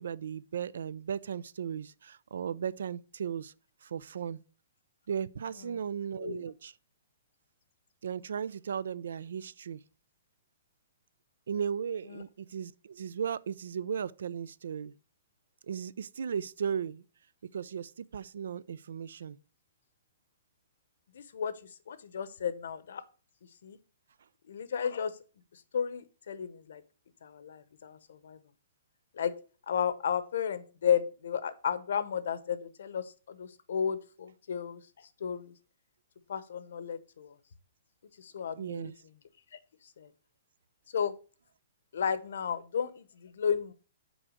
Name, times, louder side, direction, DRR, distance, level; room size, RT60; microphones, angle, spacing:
voice 1, 0.0-3.5 3.9-4.4 5.1-6.7 8.0-9.8 11.5-14.9 15.7-17.0 17.5-19.4 38.6-38.9, right 7 dB, 75° right, 0.4 m, -36 dB
voice 2, 21.1-21.5 21.9-23.0 23.6-23.8 24.5-25.1 25.7-26.8 27.2-28.4 29.2-29.3 29.7-34.8 35.2-35.5 36.3-37.3 38.2-38.9 40.0-40.1 40.9-41.1 41.9-43.7, left 7 dB, 70° left, 0.8 m, -33 dB
6.2 x 4.6 x 6.3 m
hypercardioid pair, 170°, 0 cm